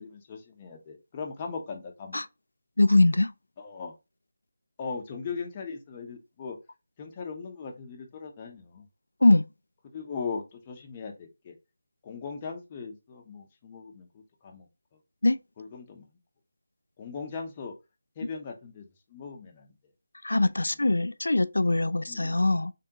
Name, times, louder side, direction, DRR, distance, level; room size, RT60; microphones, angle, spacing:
voice 1, 0.0-2.2 3.6-3.9 4.8-6.6 7.0-8.8 9.9-11.5 12.0-14.7 15.6-16.1 17.0-17.7 18.2-19.7 22.1-22.4, left 5 dB, 25° left, 0.7 m, -39 dB
voice 2, 2.8-3.3 9.2-9.4 15.2-15.4 20.2-22.7, left 2 dB, 80° left, 0.3 m, -22 dB
3.5 x 3.4 x 2.8 m
figure-of-eight pair, 165°, 0 cm